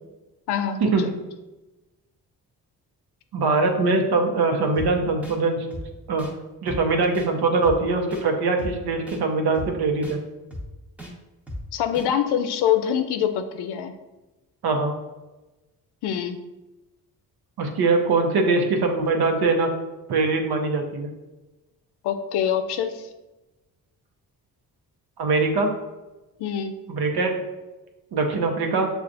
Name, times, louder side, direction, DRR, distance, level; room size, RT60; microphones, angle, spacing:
voice 1, 0.5-1.1 11.7-13.9 16.0-16.4 22.0-23.1 26.4-26.8, left 9 dB, 85° left, 9 dB, 0.5 m, -25 dB
voice 2, 3.3-5.7 6.1-6.3 6.6-10.2 14.6-14.9 17.6-19.7 20.1-21.1 25.2-25.7 26.9-27.3 28.1-28.9, right 3 dB, 70° right, 4 dB, 0.8 m, -22 dB
sound 1, 4.7-4.9 5.2-5.4 5.7-5.8 6.2-6.3 6.7-6.8 7.1-7.3 7.6-7.8 8.1-8.2 8.6-8.7 9.1-9.2 9.5-9.7 10.0-10.2 10.5-10.6 11.0-11.1 11.5-11.6 11.9-12.1, equal, 5° right, 0.9 m, -35 dB
6.6 x 2.4 x 2.5 m, 1.1 s
cardioid pair, 60°, 39 cm